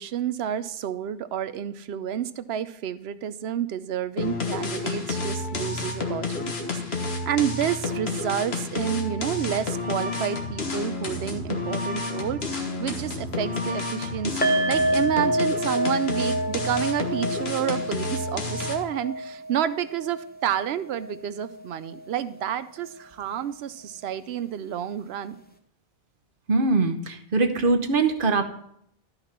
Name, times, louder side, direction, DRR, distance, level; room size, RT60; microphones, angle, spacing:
voice 1, 0.0-25.4, right 10 dB, 90° right, 14 dB, 0.9 m, -30 dB
sound 1, 4.2-19.0, left 3 dB, 85° left, 1.6 m, -30 dB
sound 2, 14.4-21.6 21.9-22.1 22.4-22.5, right 1 dB, 10° left, 0.7 m, -28 dB
voice 2, 26.5-28.4, right 3 dB, 60° right, 6 dB, 1.1 m, -22 dB
12.5 x 5.9 x 4.3 m, 0.72 s
omnidirectional pair, 1.0 m